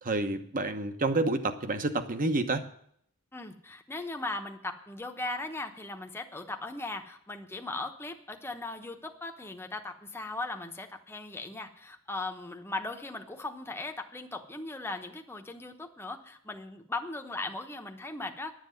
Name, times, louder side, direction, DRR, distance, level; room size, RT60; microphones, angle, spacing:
voice 1, 0.0-2.7, right 2 dB, 40° right, 9 dB, 1.1 m, -29 dB
voice 2, 3.3-18.5, left 2 dB, 10° left, 4 dB, 1.0 m, -38 dB
11.0 x 7.6 x 9.2 m, 0.65 s
head